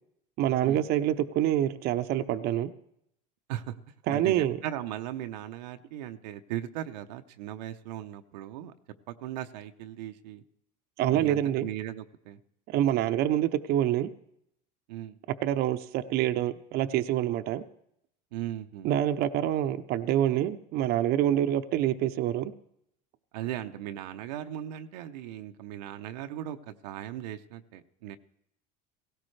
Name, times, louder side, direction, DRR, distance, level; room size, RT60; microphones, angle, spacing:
voice 1, 0.4-2.7 4.1-4.6 11.0-11.7 12.7-14.1 15.4-17.6 18.8-22.5, right 12 dB, 50° right, 9 dB, 0.7 m, -26 dB
voice 2, 4.1-8.7 9.1-10.4 11.1-12.4 14.9-15.2 18.3-19.0 23.3-28.2, right 12 dB, 85° right, 7 dB, 0.8 m, -38 dB
17.5 x 16.5 x 3.3 m, 0.75 s
supercardioid pair, 120°, 21 cm